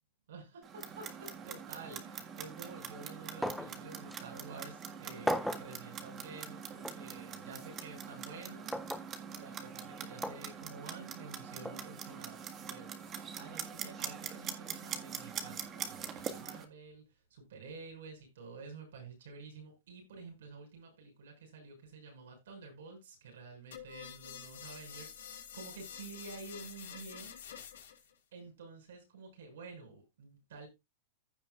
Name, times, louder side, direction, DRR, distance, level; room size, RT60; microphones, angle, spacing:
voice 1, 0.3-27.4 27.9-30.7, right 4 dB, 80° right, 6.4 m, -50 dB
Clock, 0.6-16.7, right 7 dB, 30° right, 1.7 m, -44 dB
sound 1, 3.4-3.8 4.1-4.2 5.3-5.7 6.8-7.0 8.7-9.1 10.2-10.4 11.6-11.8, equal, ahead, 0.7 m, -35 dB
sound 2, 23.7-28.1, left 9 dB, 90° left, 2.6 m, -48 dB
15.5 x 5.8 x 2.4 m
supercardioid pair, 135°, 0 cm